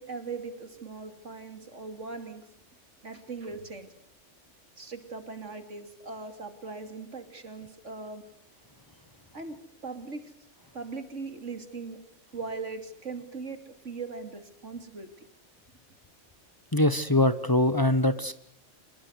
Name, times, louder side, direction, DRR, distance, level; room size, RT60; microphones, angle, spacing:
voice 1, 0.0-2.5 3.0-3.9 4.8-8.2 9.3-10.3 10.7-12.0 12.3-15.1, right 4 dB, 80° right, 8 dB, 3.2 m, -39 dB
voice 2, 16.7-18.3, left 1 dB, 20° left, 12 dB, 1.2 m, -23 dB
26.5 x 21.5 x 8.2 m, 0.66 s
omnidirectional pair, 1.2 m